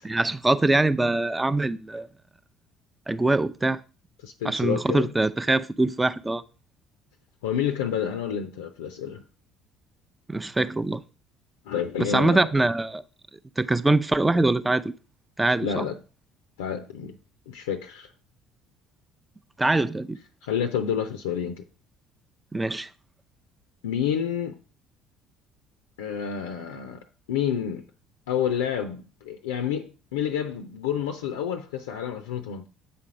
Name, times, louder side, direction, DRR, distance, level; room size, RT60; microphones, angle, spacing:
voice 1, 0.0-2.1 3.1-3.8 4.4-6.4 10.3-11.0 12.0-13.0 13.6-14.9 15.4-15.8 19.6-20.2 22.5-22.9, right 2 dB, 15° right, 0.5 m, -23 dB
voice 2, 4.2-5.1 7.4-9.2 11.7-12.5 15.6-16.0 16.6-17.2 17.5-18.1 20.4-21.6 23.8-24.6 26.0-27.0 27.3-27.9 28.3-32.7, left 8 dB, 75° left, 0.6 m, -29 dB
8.2 x 4.3 x 5.0 m
figure-of-eight pair, 55°, 0 cm